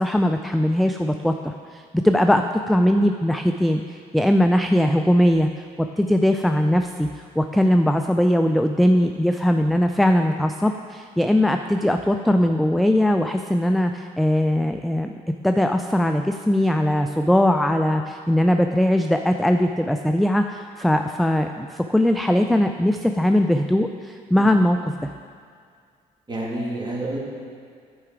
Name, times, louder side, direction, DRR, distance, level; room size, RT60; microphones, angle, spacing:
voice 1, 0.0-5.5 5.8-7.1 7.4-15.1 15.4-25.1, left 1 dB, ahead, 6 dB, 0.3 m, -20 dB
voice 2, 26.3-27.2, right 1 dB, 25° right, -4 dB, 2.3 m, -29 dB
10.5 x 4.8 x 4.8 m, 2.1 s
supercardioid pair, 65°, 17 cm